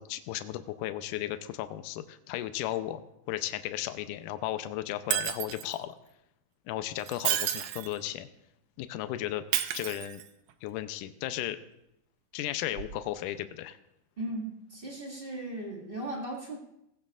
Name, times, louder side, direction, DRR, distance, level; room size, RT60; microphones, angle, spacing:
voice 1, 0.0-3.0 3.3-5.9 6.7-8.3 8.8-9.4 9.7-10.2 10.6-11.6 12.3-13.8, left 13 dB, 90° left, 10 dB, 1.8 m, -35 dB
Shatter, 5.1-5.8 7.0-8.0 9.5-10.5 12.8-12.9, right 13 dB, 85° right, 2.5 m, -31 dB
voice 2, 14.2-16.6, right 1 dB, 30° right, -3 dB, 1.0 m, -37 dB
18.0 x 15.5 x 2.4 m, 0.84 s
omnidirectional pair, 4.3 m